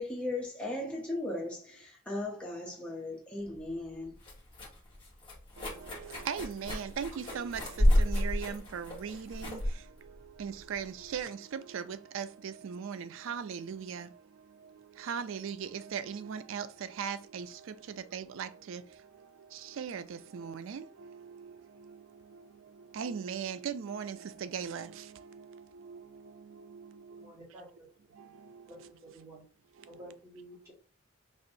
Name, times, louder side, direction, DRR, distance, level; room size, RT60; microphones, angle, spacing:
voice 1, 0.0-4.2, left 2 dB, 5° left, 0.8 m, -37 dB
sound 1, 3.4-11.2, equal, 25° left, 1.3 m, -32 dB
voice 2, 5.6-27.3 28.1-28.9 29.8-30.1, right 7 dB, 70° right, 0.3 m, -40 dB
voice 3, 27.1-27.9 28.7-29.5 29.9-30.7, right 1 dB, 15° right, 1.7 m, -51 dB
4.3 x 2.9 x 2.6 m
head